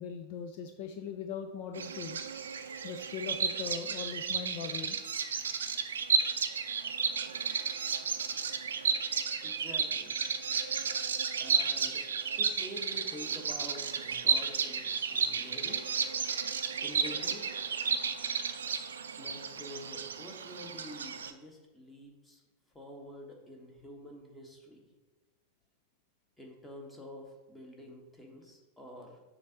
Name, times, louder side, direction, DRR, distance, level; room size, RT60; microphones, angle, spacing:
voice 1, 0.0-2.2 2.8-5.0, left 6 dB, 50° left, 6 dB, 0.4 m, -40 dB
Bird vocalization bird call bird song, 1.7-21.3, right 6 dB, 65° right, 0.4 m, -33 dB
voice 2, 9.4-10.2 11.4-12.0 12.4-15.9 16.8-17.4 19.2-22.4 22.7-24.9 26.4-29.2, equal, 5° left, 0 dB, 1.3 m, -48 dB
7.1 x 2.6 x 5.6 m, 1.2 s
figure-of-eight pair, 90°, 0 cm